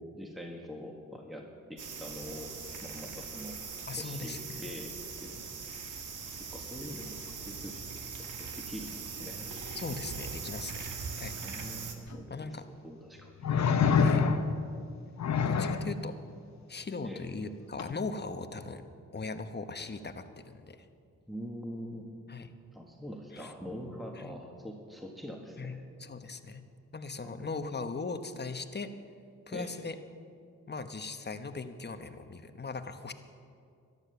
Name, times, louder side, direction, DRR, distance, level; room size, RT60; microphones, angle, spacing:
voice 1, 0.0-3.6 4.0-5.8 6.4-7.8 8.4-9.5 11.4-12.6 12.8-13.3 17.0-17.2 21.3-22.1 22.7-25.8 27.2-27.5 29.5-29.7, equal, ahead, 1 dB, 1.7 m, -44 dB
sound 1, 1.8-11.9, right 5 dB, 70° right, 1.6 m, -41 dB
voice 2, 3.9-4.6 9.8-10.9 11.1-11.4 12.3-12.7 14.0-14.2 15.5-16.1 16.7-18.8 19.1-20.8 22.3-22.5 23.3-23.5 24.2-24.3 25.6-26.6 26.9-28.9 29.5-30.0 30.7-33.1, left 4 dB, 30° left, 9 dB, 1.1 m, -39 dB
sound 2, 12.1-12.2 13.4-14.6 15.2-15.9 17.8-17.9, left 6 dB, 55° left, 0.9 m, -26 dB
14.0 x 11.0 x 6.9 m, 2.4 s
cardioid pair, 60°, 32 cm